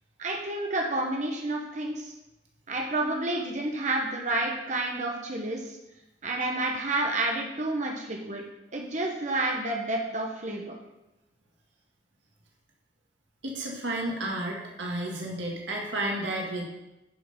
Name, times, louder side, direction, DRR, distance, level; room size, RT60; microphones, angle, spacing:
voice 1, 0.2-2.1 2.7-5.8 6.2-8.4 8.7-10.7, right 2 dB, 40° right, 0 dB, 1.3 m, -30 dB
voice 2, 13.4-16.6, right 1 dB, 80° right, -1 dB, 1.9 m, -32 dB
10.5 x 5.7 x 5.5 m, 0.96 s
head